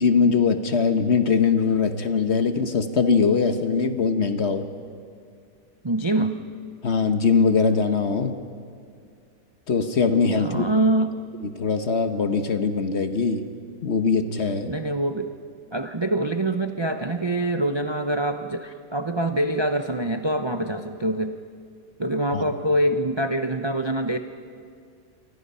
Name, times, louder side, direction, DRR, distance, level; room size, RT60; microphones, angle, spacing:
voice 1, 0.0-4.7 6.8-8.4 9.7-10.6 11.6-13.4 13.8-14.7 22.3-22.5, left 5 dB, 45° left, 8 dB, 1.2 m, -21 dB
voice 2, 5.8-6.4 10.4-11.2 14.7-15.3 15.7-21.4 22.0-24.2, right 1 dB, 40° right, 7 dB, 0.3 m, -25 dB
28.5 x 24.0 x 5.6 m, 2.2 s
omnidirectional pair, 1.8 m